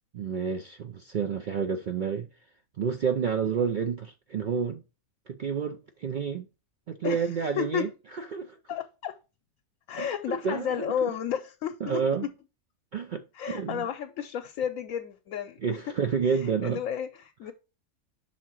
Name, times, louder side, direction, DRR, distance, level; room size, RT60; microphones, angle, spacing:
voice 1, 0.1-2.3 2.8-4.8 5.3-6.5 6.9-8.6 9.9-11.1 11.8-12.3 12.9-13.9 15.6-16.8, right 6 dB, 85° right, 0.4 m, -30 dB
voice 2, 7.6-7.9 8.7-9.2 9.9-12.0 13.3-15.8 16.3-17.5, left 9 dB, 75° left, 1.0 m, -32 dB
5.9 x 3.7 x 5.9 m
omnidirectional pair, 1.5 m